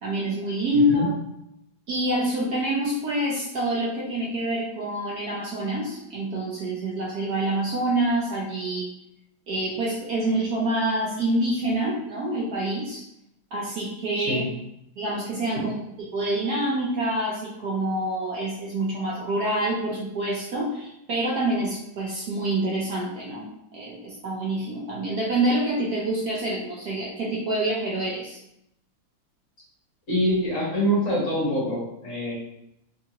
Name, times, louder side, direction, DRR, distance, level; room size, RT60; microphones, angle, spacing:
voice 1, 0.0-1.1 1.9-8.9 9.5-13.0 13.5-14.4 15.0-15.7 16.1-23.5 23.7-28.4, right 1 dB, 60° right, -4 dB, 1.2 m, -26 dB
voice 2, 0.7-1.0 14.2-14.5 30.1-32.3, equal, 45° left, -7 dB, 1.7 m, -25 dB
3.9 x 3.4 x 2.9 m, 0.80 s
omnidirectional pair, 2.1 m